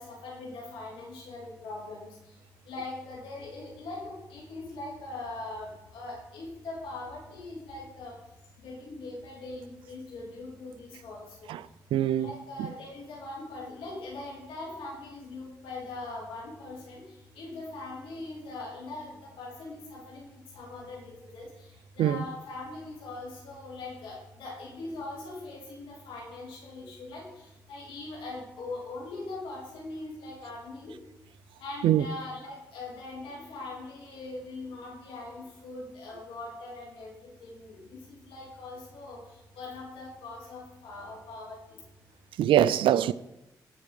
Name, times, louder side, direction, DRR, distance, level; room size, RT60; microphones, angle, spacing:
voice 1, 0.0-2.1 2.7-8.1 8.6-11.5 12.2-17.0 17.3-19.1 19.4-20.3 20.5-21.7 22.0-27.3 27.7-30.9 31.6-39.2 39.6-41.8, left 2 dB, 80° left, 3.0 m, -41 dB
voice 2, 11.9-12.3 22.0-22.2 31.8-32.0 42.4-43.1, right 11 dB, 75° right, 0.4 m, -23 dB
15.0 x 6.0 x 4.9 m
hypercardioid pair, 40°, 9 cm